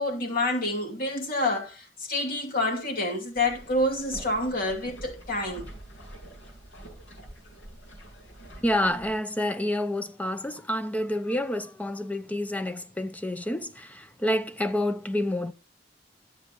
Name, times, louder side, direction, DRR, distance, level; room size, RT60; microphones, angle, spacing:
voice 1, 0.0-5.7, left 1 dB, 55° left, 2.6 m, -28 dB
sound 1, 3.3-9.1, right 1 dB, 85° left, 6.4 m, -45 dB
voice 2, 8.6-15.5, left 1 dB, 10° left, 0.5 m, -28 dB
12.5 x 8.0 x 3.0 m
head